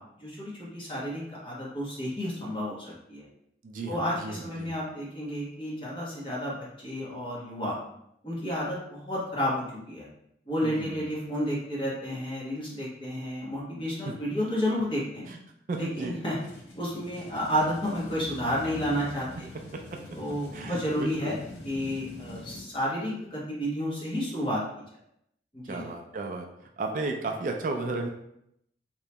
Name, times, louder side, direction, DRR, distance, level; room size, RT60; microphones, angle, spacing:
voice 1, 0.2-3.3 3.9-6.5 6.8-7.8 8.2-10.1 10.5-15.3 15.8-16.4 16.7-19.5 20.1-21.3 21.6-24.8 25.5-25.8, equal, 30° left, -6 dB, 1.1 m, -31 dB
voice 2, 3.6-4.7 10.6-11.0 15.3-15.4 15.7-16.2 20.5-21.4 25.7-26.4 26.8-28.1, right 3 dB, 45° right, 2 dB, 0.3 m, -34 dB
sound 1, 15.7-22.6, left 1 dB, 80° left, 0.7 m, -44 dB
3.0 x 2.8 x 3.3 m, 0.78 s
head